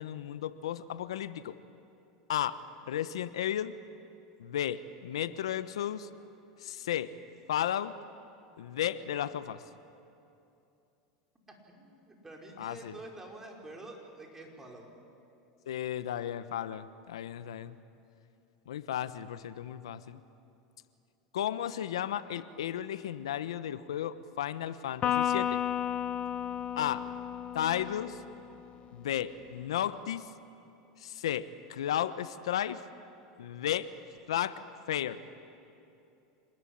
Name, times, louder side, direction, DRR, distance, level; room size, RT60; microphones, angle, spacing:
voice 1, 0.0-1.6 2.3-2.6 2.9-3.8 4.4-6.1 6.6-7.1 7.5-7.9 8.6-9.6 12.6-12.9 15.7-17.8 18.7-20.2 21.3-25.6 26.8-27.1 27.5-28.2 28.9-30.3 31.0-32.8 33.4-33.9 34.3-34.6 34.9-35.2, left 11 dB, 90° left, 14 dB, 1.0 m, -34 dB
voice 2, 11.7-14.9, right 2 dB, 15° right, 0 dB, 5.1 m, -47 dB
Electric guitar, 25.0-28.6, left 10 dB, 40° left, 1.1 m, -32 dB
26.5 x 20.0 x 8.8 m, 2.7 s
supercardioid pair, 110°, 3 cm